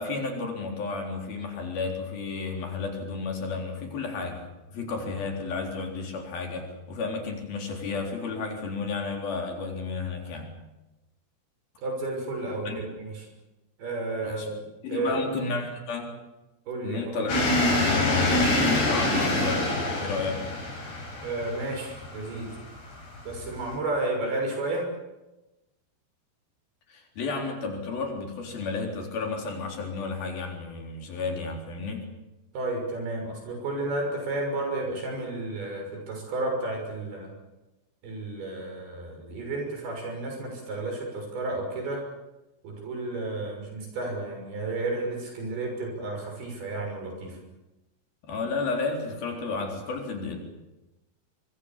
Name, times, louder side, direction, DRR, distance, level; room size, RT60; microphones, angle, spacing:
voice 1, 0.0-4.4 4.7-10.5 12.7-12.8 14.2-14.5 14.8-16.1 16.8-19.7 20.0-20.5 26.9-32.0 48.2-50.4, left 4 dB, 60° left, 2 dB, 5.6 m, -32 dB
voice 2, 11.8-13.3 13.8-14.6 14.9-15.2 16.7-17.3 21.2-22.5 23.2-24.9 32.5-37.3 38.0-42.0 42.6-47.4, right 2 dB, 65° right, 2 dB, 8.2 m, -32 dB
sound 1, 17.3-23.7, left 1 dB, 85° left, 9.0 m, -26 dB
24.5 x 24.5 x 7.4 m, 1.0 s
omnidirectional pair, 4.8 m